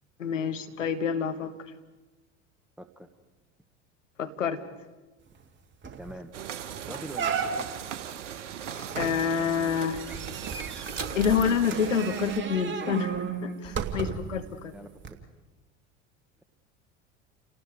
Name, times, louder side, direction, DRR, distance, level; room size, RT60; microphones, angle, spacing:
voice 1, 0.2-1.5 4.2-4.6 8.9-10.0 11.1-14.7, left 6 dB, 85° left, 7 dB, 1.5 m, -28 dB
voice 2, 2.8-3.1 6.0-6.3 6.9-7.8 14.7-15.2, right 1 dB, ahead, 8 dB, 1.4 m, -43 dB
sound 1, 5.4-5.5 5.8-6.1 6.6-6.7 7.1-7.9 8.9-14.4 15.0-15.1, right 6 dB, 30° right, 2.5 m, -34 dB
sound 2, 6.3-12.4, right 9 dB, 75° right, 1.3 m, -40 dB
sound 3, 8.7-12.9, right 4 dB, 90° right, 1.3 m, -43 dB
29.5 x 18.5 x 4.9 m, 1.2 s
figure-of-eight pair, 75°, 37 cm